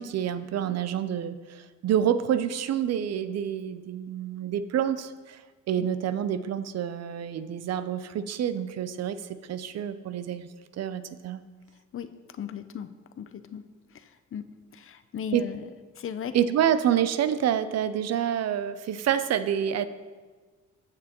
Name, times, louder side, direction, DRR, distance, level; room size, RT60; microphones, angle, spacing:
voice 1, 0.0-5.4 5.7-10.5 10.8-11.4 15.3-15.5 16.3-19.9, right 9 dB, 60° right, 13 dB, 0.5 m, -28 dB
voice 2, 11.9-12.9 13.2-15.7 16.0-16.3, left 8 dB, 45° left, 11 dB, 0.6 m, -37 dB
13.5 x 6.4 x 3.0 m, 1.4 s
cardioid pair, 90°, 30 cm